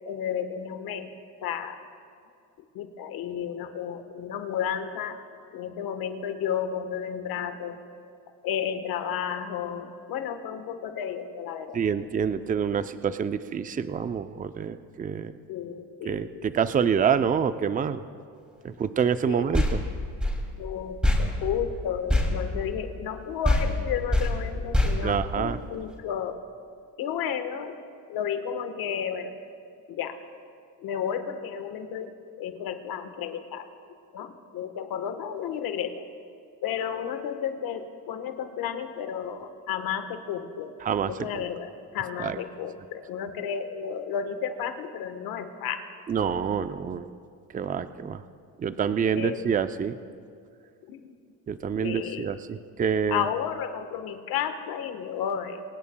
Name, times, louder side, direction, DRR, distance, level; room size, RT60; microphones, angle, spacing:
voice 1, 0.1-1.1 1.4-1.8 2.7-5.2 5.5-7.8 8.4-11.8 15.5-16.5 19.3-19.4 20.5-26.4 27.0-27.8 28.1-29.4 29.9-30.2 30.8-33.7 34.1-36.0 36.6-40.8 41.1-45.8 49.1-49.4 50.9-51.1 51.8-52.4 53.1-55.6, left 8 dB, 75° left, 8 dB, 1.3 m, -32 dB
voice 2, 11.7-15.3 16.0-18.0 18.6-19.9 25.0-25.6 40.8-41.1 42.2-42.4 46.1-47.1 47.5-48.2 48.6-50.0 51.5-53.3, right 7 dB, 25° right, 11 dB, 0.5 m, -27 dB
sound 1, 19.5-23.2 23.4-25.9, left 1 dB, 5° right, 2.6 m, -26 dB
24.0 x 19.5 x 2.3 m, 2.4 s
cardioid pair, 105°, 36 cm